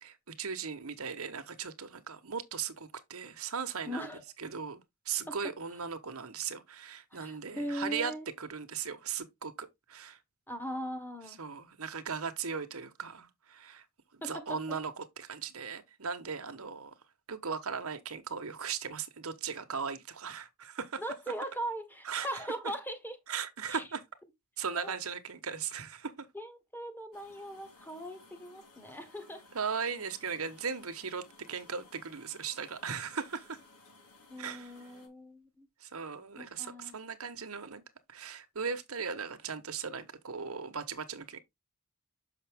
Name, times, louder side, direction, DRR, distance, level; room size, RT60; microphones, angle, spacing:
voice 1, 0.0-4.1 4.4-8.1 8.4-10.2 11.4-13.8 14.1-16.9 17.3-21.0 22.0-22.3 23.3-24.0 24.6-26.3 29.5-33.6 34.4-34.7 35.8-37.8 38.1-41.4, right 6 dB, 70° right, 1.2 m, -38 dB
voice 2, 3.8-4.2 5.3-5.4 7.1-8.3 10.5-11.4 14.2-14.8 21.0-23.2 23.7-23.8 24.7-24.9 26.3-29.4 34.3-35.7 36.4-37.0, equal, 10° left, 1.4 m, -40 dB
sound 1, 27.1-35.1, left 3 dB, 80° left, 4.5 m, -59 dB
6.8 x 5.9 x 3.5 m
head